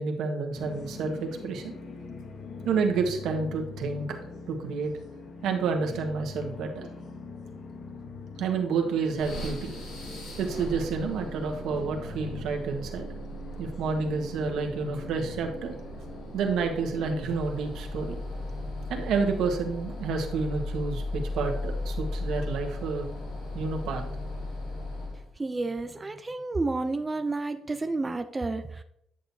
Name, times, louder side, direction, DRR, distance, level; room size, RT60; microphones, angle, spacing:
voice 1, 0.0-1.8 2.6-4.2 4.5-4.9 5.4-6.9 8.4-9.7 10.4-13.1 13.6-15.7 16.3-18.2 18.9-23.1 23.5-24.0, right 5 dB, 85° right, 3 dB, 1.4 m, -29 dB
sound 1, 0.5-17.2, left 4 dB, 65° left, 1.1 m, -43 dB
sound 2, 9.2-25.3, left 1 dB, 90° left, 2.2 m, -37 dB
voice 2, 25.4-28.8, right 3 dB, 20° right, 7 dB, 0.6 m, -30 dB
9.9 x 6.5 x 2.8 m, 0.72 s
cardioid pair, 90°, 0 cm